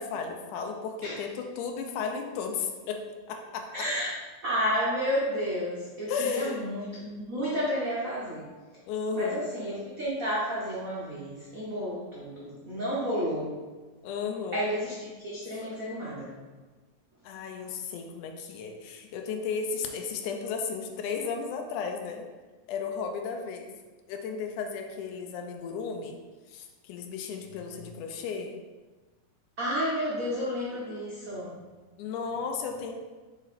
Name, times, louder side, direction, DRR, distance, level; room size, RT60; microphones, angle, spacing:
voice 1, 0.0-3.9 6.1-6.6 8.9-9.4 14.0-14.6 17.2-22.3 22.7-23.7 24.1-26.2 26.5-28.5 32.0-32.9, left 5 dB, 85° left, 3 dB, 2.2 m, -34 dB
voice 2, 3.7-4.1 4.4-8.5 9.1-13.6 14.5-16.3 29.6-31.5, equal, 90° right, -7 dB, 0.7 m, -31 dB
7.0 x 4.2 x 4.2 m, 1.3 s
omnidirectional pair, 3.4 m